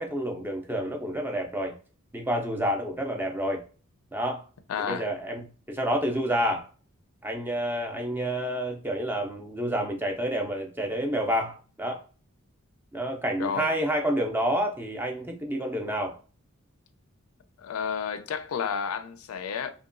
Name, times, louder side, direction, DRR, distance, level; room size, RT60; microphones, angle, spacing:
voice 1, 0.0-1.8 2.1-3.6 4.1-4.4 4.8-6.7 7.2-12.0 12.9-16.2, equal, 10° right, 0.3 m, -29 dB
voice 2, 4.7-5.1 13.4-13.7 17.6-19.7, left 7 dB, 85° left, 0.4 m, -31 dB
2.8 x 2.2 x 2.4 m
head